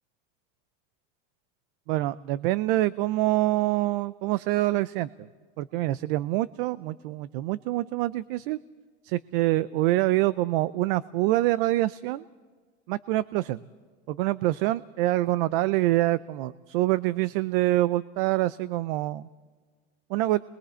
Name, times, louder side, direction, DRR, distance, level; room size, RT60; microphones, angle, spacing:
voice 1, 1.9-5.1 5.6-8.6 9.0-12.2 12.9-13.6 14.1-19.3 20.1-20.4, right 17 dB, 60° right, 17 dB, 0.5 m, -25 dB
29.0 x 21.5 x 4.4 m, 1.5 s
cardioid pair, 175°, 30 cm